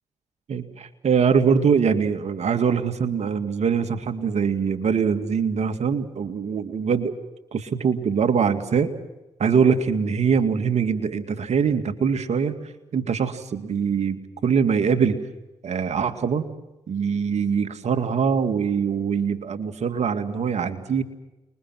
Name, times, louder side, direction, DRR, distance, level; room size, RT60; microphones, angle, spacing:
voice 1, 0.5-7.1 7.5-8.9 9.4-12.5 12.9-15.2 15.6-16.5 16.9-21.0, right 6 dB, 60° right, 8 dB, 2.3 m, -23 dB
29.0 x 22.0 x 6.1 m, 1.0 s
supercardioid pair, 55°, 13 cm